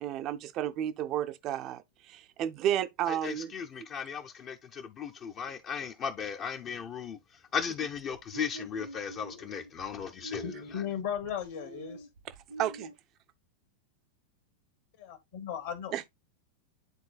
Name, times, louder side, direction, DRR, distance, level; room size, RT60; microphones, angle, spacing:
voice 1, 0.0-3.5 3.8-3.9 12.6-12.9 15.9-16.1, right 11 dB, 35° right, 0.6 m, -32 dB
voice 2, 3.2-7.2 7.5-10.4, left 7 dB, 30° left, 0.7 m, -36 dB
sound 1, 7.9-12.9, right 2 dB, 75° right, 1.5 m, -45 dB
voice 3, 10.4-12.1 15.0-16.1, left 9 dB, 60° left, 1.5 m, -36 dB
10.5 x 3.9 x 2.3 m
figure-of-eight pair, 90°, 0 cm